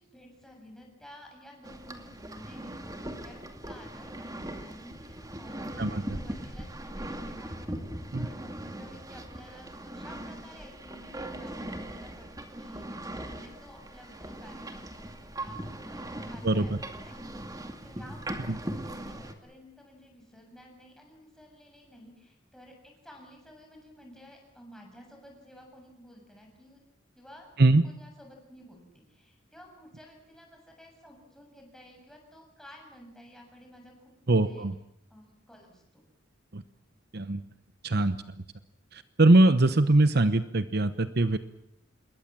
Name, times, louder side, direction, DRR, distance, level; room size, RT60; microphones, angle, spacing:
voice 1, 0.0-17.4 17.8-26.8 27.2-34.7 35.1-36.0, equal, 5° left, 1 dB, 7.5 m, -53 dB
sound 1, 1.6-19.3, right 1 dB, 20° right, 2.2 m, -40 dB
voice 2, 5.8-6.2 8.1-8.3 16.4-16.7 27.6-27.8 34.3-34.7 36.5-36.6 37.1-37.4 37.8-38.2 38.9-41.4, right 2 dB, 55° right, 12 dB, 0.9 m, -22 dB
27.5 x 21.5 x 7.6 m, 0.78 s
head